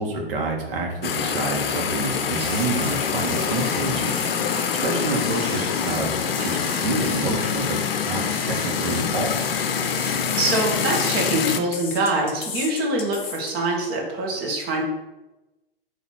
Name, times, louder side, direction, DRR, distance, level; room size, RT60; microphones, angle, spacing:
voice 1, 0.0-4.2 4.8-6.1 6.4-9.6, right 2 dB, 65° right, 1 dB, 1.3 m, -28 dB
sound 1, 1.0-11.6, left 7 dB, 65° left, 0.6 m, -25 dB
sound 2, 1.5-11.6, right 3 dB, 85° right, 1.2 m, -37 dB
sound 3, 6.3-9.1 10.0-11.4 11.7-13.5, left 6 dB, 20° left, 0.4 m, -36 dB
voice 2, 10.4-14.8, right 2 dB, 30° right, 0 dB, 1.2 m, -24 dB
4.0 x 2.8 x 4.5 m, 1.0 s
hypercardioid pair, 120°, 30 cm